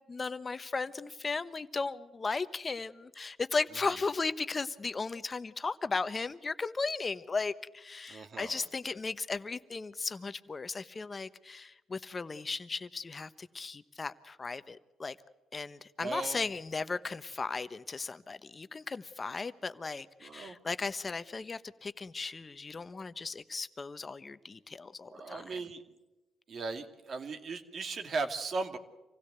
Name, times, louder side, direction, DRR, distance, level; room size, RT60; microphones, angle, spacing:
voice 1, 0.0-15.2 15.5-25.5, left 4 dB, 30° left, 1.1 m, -36 dB
voice 2, 8.1-8.6 16.0-16.5 20.2-20.6 25.1-25.8 26.5-28.8, right 3 dB, 50° right, 2.4 m, -37 dB
26.5 x 16.5 x 8.1 m
cardioid pair, 90°, 0 cm